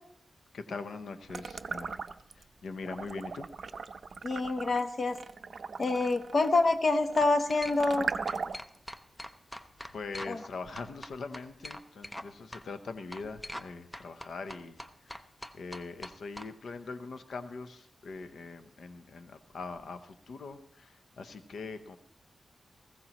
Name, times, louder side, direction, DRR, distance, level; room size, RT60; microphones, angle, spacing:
voice 1, 0.5-1.9 2.4-3.5 9.9-15.2 15.5-22.0, left 4 dB, 85° left, 9 dB, 0.8 m, -42 dB
sound 1, 1.3-2.4 2.8-8.8, right 5 dB, 55° right, 0.5 m, -38 dB
voice 2, 4.2-5.2 5.8-8.1 10.3-10.4, left 3 dB, 45° left, 7 dB, 1.0 m, -27 dB
sound 2, 6.4-6.7 7.2-8.0 8.3-10.5 10.8-12.3 12.5-12.6 13.1-13.7 13.9-16.5, left 1 dB, 10° left, 0.7 m, -43 dB
19.5 x 15.5 x 3.0 m, 0.68 s
wide cardioid pair, 145°, 0 cm